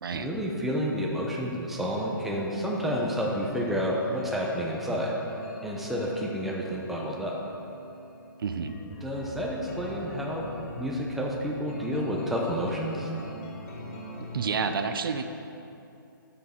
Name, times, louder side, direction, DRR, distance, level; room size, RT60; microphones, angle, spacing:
voice 1, 0.1-5.2 5.6-7.4 9.0-10.5 10.8-13.1, equal, ahead, -2 dB, 0.5 m, -30 dB
sound 1, 1.8-14.6, left 1 dB, 40° left, 1.2 m, -41 dB
voice 2, 8.4-8.8 14.3-15.2, right 5 dB, 75° right, 8 dB, 0.5 m, -29 dB
7.6 x 5.9 x 3.7 m, 2.7 s
hypercardioid pair, 150°, 12 cm